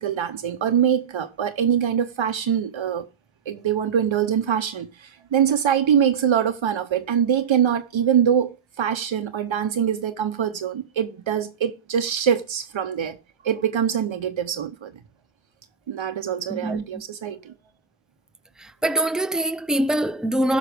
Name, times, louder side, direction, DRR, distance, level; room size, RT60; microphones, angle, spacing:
voice 1, 0.0-3.1 3.5-13.2 13.4-14.9 15.9-17.5, right 8 dB, 80° right, 0.8 m, -23 dB
voice 2, 16.5-17.0 18.8-20.6, right 1 dB, ahead, 0.6 m, -23 dB
15.5 x 5.7 x 3.4 m
cardioid pair, 40°, 46 cm